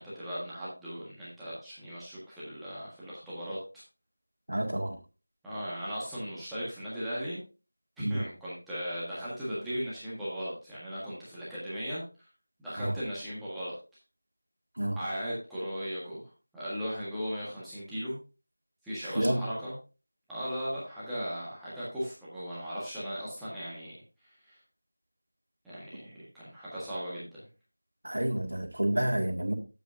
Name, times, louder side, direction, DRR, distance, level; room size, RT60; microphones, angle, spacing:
voice 1, 0.0-3.6 5.4-7.4 8.0-12.3 12.6-13.7 14.9-18.2 18.8-19.7 20.3-24.0 24.2-24.6 25.6-27.4, equal, ahead, -12 dB, 1.5 m, -37 dB
voice 2, 4.5-5.0 8.0-8.2 12.8-12.9 14.8-15.0 19.0-19.4 28.0-29.5, right 1 dB, 70° right, 2 dB, 2.0 m, -29 dB
8.9 x 8.1 x 2.6 m, 0.32 s
figure-of-eight pair, 170°, 0 cm